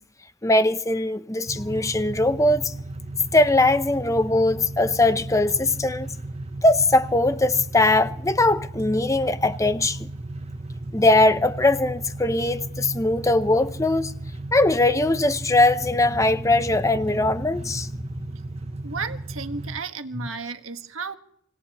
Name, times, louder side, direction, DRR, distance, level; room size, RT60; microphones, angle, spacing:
voice 1, 0.4-2.7 3.3-6.1 6.6-10.1 10.9-14.1 14.5-17.9, left 2 dB, 15° left, 0.6 m, -20 dB
sound 1, 1.5-19.8, right 2 dB, 30° right, 0.6 m, -35 dB
voice 2, 18.8-21.2, right 4 dB, 85° right, 1.4 m, -33 dB
26.0 x 18.0 x 3.0 m
head